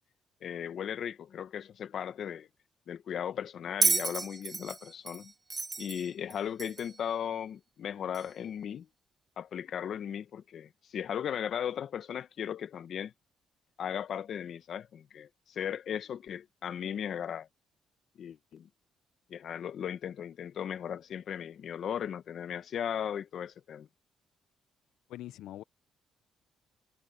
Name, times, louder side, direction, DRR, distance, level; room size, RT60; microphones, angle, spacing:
voice 1, 0.4-2.5 2.9-5.3 5.8-8.9 9.4-13.1 13.8-17.5 18.2-18.7 19.3-23.9, left 9 dB, 65° left, 1.4 m, -37 dB
Bell, 3.8-7.0 8.1-8.3, right 3 dB, 25° right, 0.3 m, -31 dB
voice 2, 25.1-25.6, left 14 dB, 85° left, 0.6 m, -43 dB
cardioid pair, 90°, 0 cm